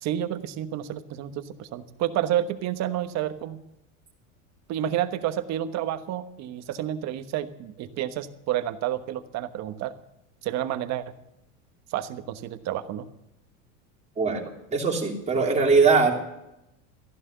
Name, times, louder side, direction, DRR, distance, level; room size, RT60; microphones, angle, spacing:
voice 1, 0.0-3.6 4.7-10.0 10.4-11.1 11.9-13.1, right 11 dB, 45° right, 10 dB, 1.2 m, -30 dB
voice 2, 14.2-16.1, right 4 dB, 15° right, 0 dB, 3.3 m, -21 dB
14.5 x 11.0 x 6.7 m, 0.88 s
supercardioid pair, 120°, 38 cm